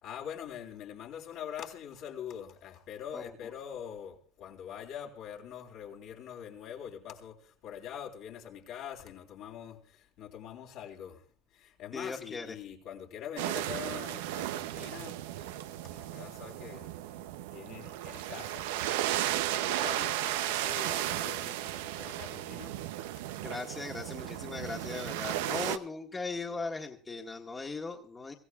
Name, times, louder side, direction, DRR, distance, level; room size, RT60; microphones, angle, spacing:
voice 1, 0.0-11.2 11.5-16.9 17.5-22.8, left 9 dB, 65° left, 3.6 m, -44 dB
voice 2, 11.9-12.5 23.4-28.3, left 3 dB, 20° left, 1.6 m, -38 dB
sound 1, 13.4-25.8, right 13 dB, 85° right, 0.7 m, -35 dB
24.5 x 15.5 x 2.4 m
supercardioid pair, 90°, 0 cm